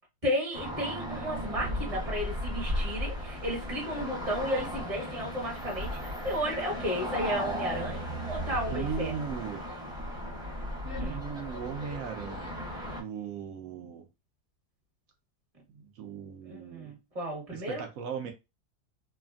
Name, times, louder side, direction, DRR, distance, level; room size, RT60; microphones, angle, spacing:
voice 1, 0.2-8.0 8.3-9.1 10.8-11.2 16.5-17.8, equal, 25° right, 1.1 m, -33 dB
sound 1, 0.5-13.0, equal, 5° right, 0.7 m, -36 dB
voice 2, 8.7-9.6 10.9-12.7 13.0-14.1 15.7-16.9 17.5-18.3, right 7 dB, 70° right, 0.8 m, -38 dB
3.2 x 2.2 x 2.4 m
omnidirectional pair, 1.7 m